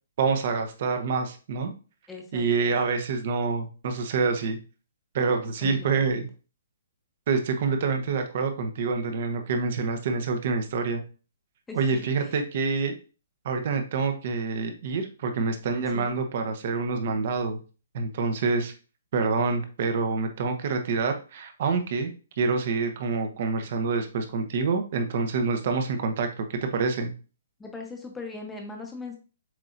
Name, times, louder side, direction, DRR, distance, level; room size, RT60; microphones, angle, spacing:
voice 1, 0.2-1.7 2.3-4.6 5.1-6.3 7.3-11.0 11.7-12.9 13.4-17.6 17.9-18.7 19.1-22.1 22.4-27.1, right 4 dB, 45° right, 6 dB, 0.9 m, -27 dB
voice 2, 2.1-2.5 5.6-6.2 11.7-12.0 15.9-16.1 27.6-29.2, left 3 dB, 5° left, 1 dB, 0.9 m, -39 dB
7.4 x 2.7 x 2.6 m, 0.35 s
hypercardioid pair, 160°, 0 cm